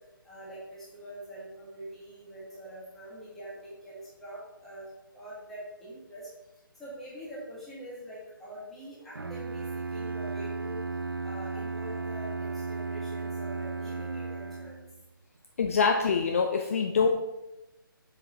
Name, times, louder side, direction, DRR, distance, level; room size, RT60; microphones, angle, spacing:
voice 1, 0.2-6.3 6.8-10.9 11.2-14.8, right 1 dB, ahead, -10 dB, 1.8 m, -44 dB
Bowed string instrument, 9.1-15.0, right 4 dB, 75° right, 0.5 m, -35 dB
voice 2, 15.6-17.1, left 5 dB, 40° left, 3 dB, 0.5 m, -25 dB
7.0 x 4.7 x 3.9 m, 0.96 s
figure-of-eight pair, 145°, 12 cm